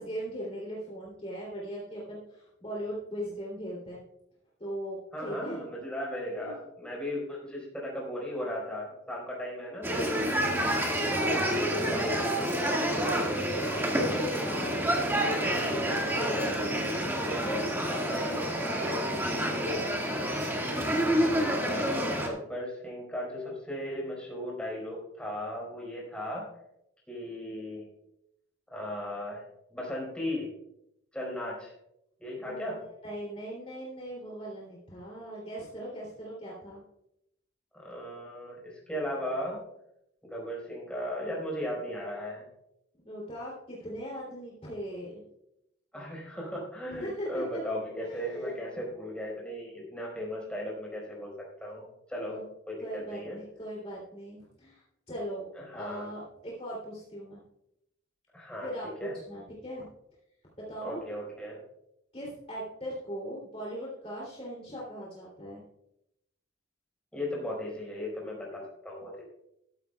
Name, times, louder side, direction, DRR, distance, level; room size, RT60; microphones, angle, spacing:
voice 1, 0.0-4.0 4.6-5.6 6.4-6.5 10.3-11.0 13.0-14.9 15.5-16.9 17.2-19.6 32.4-36.8 43.0-45.2 47.0-47.6 48.0-48.6 52.3-52.4 52.8-55.5 55.7-57.4 58.6-59.9 60.6-61.0 62.1-65.6, equal, 30° left, -6 dB, 3.0 m, -39 dB
voice 2, 5.1-10.4 11.0-12.2 16.3-16.6 18.0-18.5 21.6-26.5 27.1-27.9 28.7-29.4 29.7-30.5 31.1-31.7 32.2-32.8 37.7-39.6 40.2-42.5 45.9-51.3 51.6-52.4 52.7-53.4 55.5-56.1 58.3-58.7 59.0-59.2 60.8-61.6 67.1-69.2, equal, 5° left, -4 dB, 4.6 m, -37 dB
sound 1, 9.8-22.3, equal, 10° right, 1.8 m, -28 dB
14.5 x 13.0 x 2.3 m, 0.84 s
head